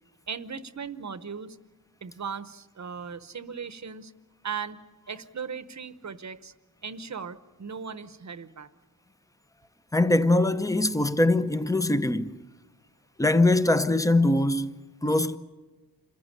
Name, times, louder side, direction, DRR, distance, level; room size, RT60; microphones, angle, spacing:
voice 1, 0.3-1.6 2.0-4.1 4.4-4.8 5.1-6.5 6.8-8.7, right 6 dB, 45° right, 0.9 m, -37 dB
voice 2, 9.9-12.4 13.2-15.4, left 2 dB, 10° left, 0.7 m, -22 dB
27.0 x 14.5 x 9.7 m
wide cardioid pair, 130°, 38 cm